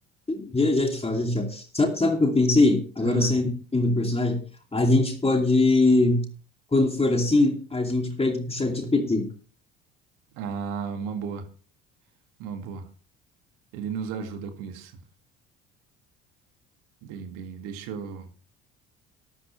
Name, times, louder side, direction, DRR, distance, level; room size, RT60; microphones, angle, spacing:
voice 1, 0.3-4.4 4.7-6.2 6.7-9.3, left 2 dB, 15° left, 3 dB, 2.6 m, -22 dB
voice 2, 3.0-3.3 10.3-11.5 12.4-12.9 13.7-14.9 17.0-18.3, right 6 dB, 65° right, 7 dB, 2.0 m, -34 dB
13.0 x 12.5 x 3.2 m, 0.39 s
hypercardioid pair, 60°, 35 cm